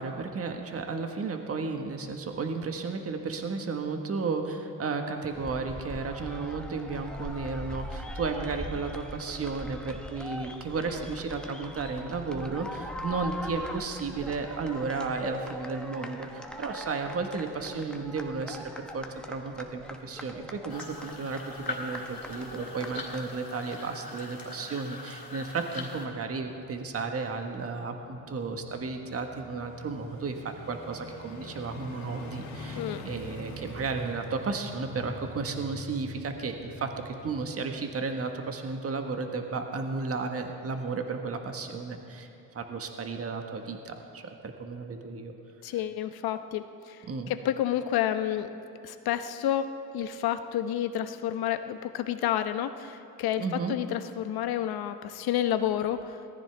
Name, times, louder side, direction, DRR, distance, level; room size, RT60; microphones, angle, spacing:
voice 1, 0.0-42.3 42.5-45.3 47.1-47.3 53.4-53.8, right 4 dB, 35° right, 4 dB, 1.4 m, -33 dB
sound 1, 5.3-23.4, equal, ahead, 1.2 m, -41 dB
sound 2, 20.7-26.1, left 3 dB, 20° left, 3.8 m, -41 dB
sound 3, 22.1-38.7 39.0-39.1, left 2 dB, 85° left, 3.0 m, -47 dB
voice 2, 45.6-48.5 48.8-56.2, left 11 dB, 65° left, 9 dB, 1.0 m, -30 dB
19.0 x 14.5 x 3.5 m, 2.9 s
supercardioid pair, 80°, 40 cm